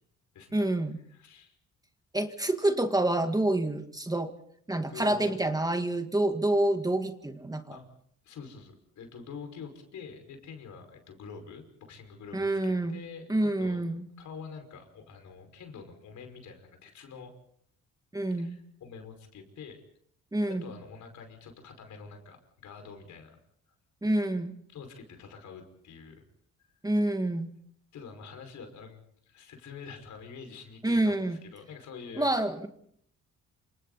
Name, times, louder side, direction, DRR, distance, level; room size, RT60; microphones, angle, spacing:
voice 1, 0.5-1.0 2.1-4.3 4.7-7.8 12.3-13.0 13.3-14.1 18.1-18.6 20.3-20.7 24.0-24.5 26.8-27.5 30.8-31.4 32.2-32.7, right 1 dB, 10° right, 7 dB, 1.9 m, -27 dB
voice 2, 1.1-1.5 4.9-5.3 7.7-7.9 8.2-13.8 14.2-17.3 18.4-19.8 20.5-22.4 22.6-23.4 24.7-26.2 27.9-32.3, left 5 dB, 75° left, 6 dB, 5.6 m, -46 dB
28.5 x 26.5 x 4.2 m, 0.66 s
cardioid pair, 90°, 30 cm